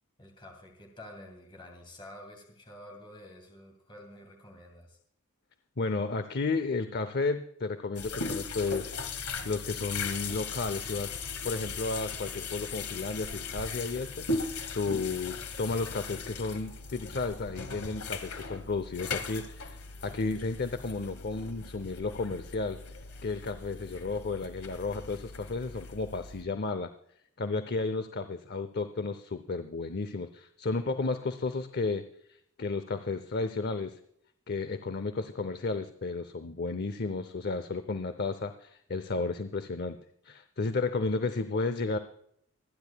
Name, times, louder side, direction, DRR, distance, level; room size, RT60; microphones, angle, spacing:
voice 1, 0.2-5.0, left 1 dB, 25° left, 2 dB, 2.7 m, -49 dB
voice 2, 5.8-8.9 9.2-11.1 11.4-22.8 23.2-26.9 27.4-32.0 32.6-34.0 34.5-40.0 40.2-42.0, left 3 dB, 50° left, 11 dB, 0.7 m, -33 dB
sound 1, 8.0-26.4, left 4 dB, 85° left, 1.8 m, -38 dB
25.5 x 10.5 x 2.3 m, 0.71 s
head